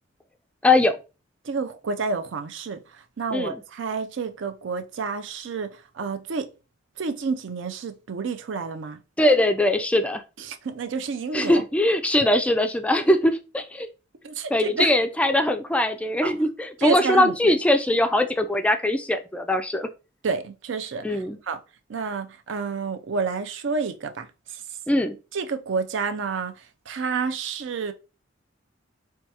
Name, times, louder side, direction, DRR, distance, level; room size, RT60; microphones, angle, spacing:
voice 1, 0.6-1.0 3.3-3.5 9.2-10.2 11.3-13.9 14.5-19.9 21.0-21.4 24.9-25.2, left 1 dB, 5° left, 0.3 m, -21 dB
voice 2, 1.4-6.5 7.0-9.0 10.4-11.6 14.2-14.9 16.2-16.4 16.8-17.5 20.2-21.6 21.9-24.6 25.3-27.9, right 5 dB, 70° right, 0.5 m, -30 dB
4.5 x 2.3 x 2.7 m
head